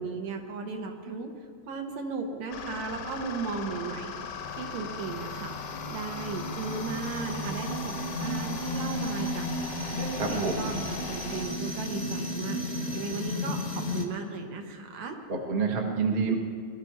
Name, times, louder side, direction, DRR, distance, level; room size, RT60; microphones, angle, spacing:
voice 1, 0.0-1.3 1.7-4.1 4.5-9.5 9.9-15.2, right 4 dB, 70° right, 3 dB, 2.5 m, -36 dB
sound 1, 2.5-11.4, left 6 dB, 80° left, 2.5 m, -39 dB
sound 2, 4.2-14.1, left 1 dB, 40° left, 0.9 m, -34 dB
voice 2, 10.2-10.8 15.3-16.3, right 5 dB, 35° right, 1 dB, 0.7 m, -28 dB
21.0 x 13.5 x 4.4 m, 2.2 s
omnidirectional pair, 3.5 m